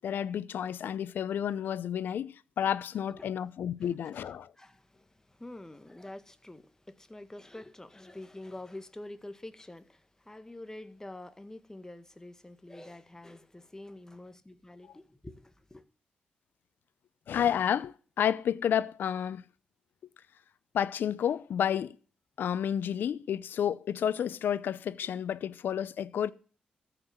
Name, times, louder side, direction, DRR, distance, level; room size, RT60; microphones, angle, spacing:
voice 1, 0.0-4.5 17.3-19.5 20.7-22.0 22.4-26.3, left 9 dB, 75° left, 0.6 m, -30 dB
voice 2, 3.8-15.8, left 1 dB, 15° left, 1.6 m, -47 dB
14.0 x 5.9 x 7.8 m
supercardioid pair, 50°, 3 cm